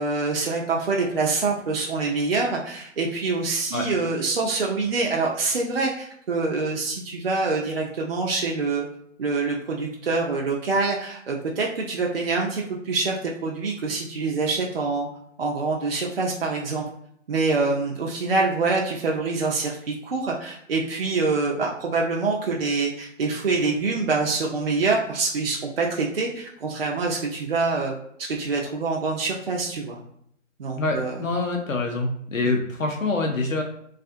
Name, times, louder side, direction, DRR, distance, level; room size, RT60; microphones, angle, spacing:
voice 1, 0.0-8.9 9.2-15.1 15.4-16.8 17.3-30.0 30.6-31.1, right 3 dB, 50° right, -1 dB, 0.4 m, -25 dB
voice 2, 30.7-33.6, left 3 dB, 85° left, 2 dB, 0.6 m, -25 dB
2.4 x 2.3 x 2.5 m, 0.69 s
figure-of-eight pair, 140°, 39 cm